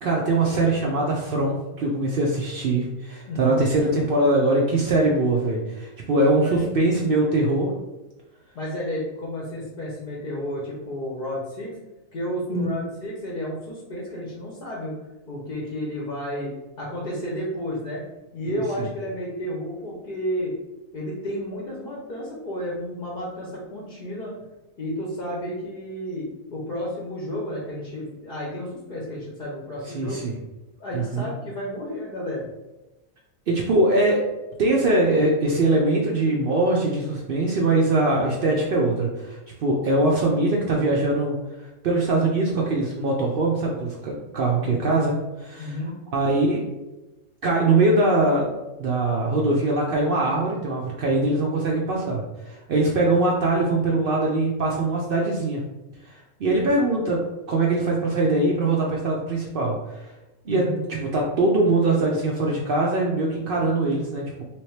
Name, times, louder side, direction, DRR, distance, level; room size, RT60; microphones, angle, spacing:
voice 1, 0.0-7.7 12.5-12.7 18.5-18.9 29.9-30.3 30.9-31.3 33.5-34.2 34.6-41.3 41.8-45.1 45.4-45.8 46.1-46.6 47.4-48.5 48.8-55.6 56.0-57.2 57.5-60.1 60.5-64.4, right 2 dB, 70° right, -2 dB, 0.5 m, -22 dB
voice 2, 3.3-3.6 6.0-6.6 8.5-11.7 12.1-14.9 15.3-16.5 16.8-18.0 18.3-20.5 20.9-24.3 24.8-26.2 26.5-30.2 30.8-32.5 44.6-45.0 45.6-46.0 60.5-60.8, equal, 45° left, -4 dB, 0.7 m, -32 dB
3.4 x 2.9 x 3.1 m, 1.0 s
omnidirectional pair, 1.5 m